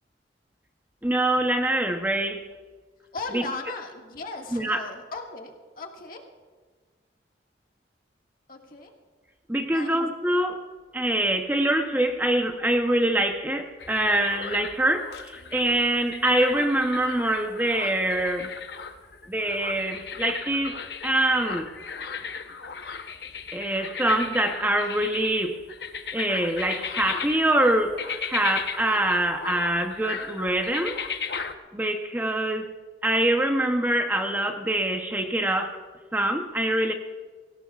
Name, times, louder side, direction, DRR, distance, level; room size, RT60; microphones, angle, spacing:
voice 1, 1.0-2.5 3.3-3.4 4.5-4.8 9.5-10.6 10.9-18.5 19.3-21.7 23.5-25.6 26.1-31.0 31.7-32.7 33.0-35.8 36.1-36.9, right 1 dB, 10° right, 4 dB, 0.8 m, -24 dB
voice 2, 3.1-6.2 8.5-8.9 9.7-10.0, left 3 dB, 50° left, 1 dB, 1.8 m, -37 dB
sound 1, 13.8-31.6, left 6 dB, 70° left, 0.9 m, -36 dB
24.0 x 17.0 x 2.4 m, 1.4 s
head